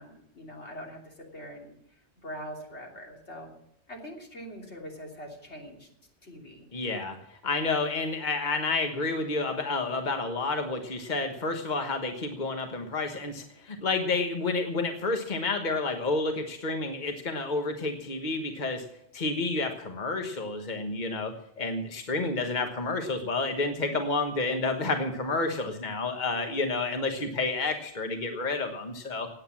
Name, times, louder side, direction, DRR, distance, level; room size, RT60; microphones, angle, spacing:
voice 1, 0.0-1.7 2.2-3.5 3.9-5.9 6.2-6.7, equal, 75° left, 0 dB, 3.5 m, -43 dB
voice 2, 6.7-18.8 19.1-29.3, left 3 dB, 45° left, 5 dB, 1.4 m, -30 dB
17.0 x 9.2 x 7.4 m, 0.77 s
omnidirectional pair, 1.2 m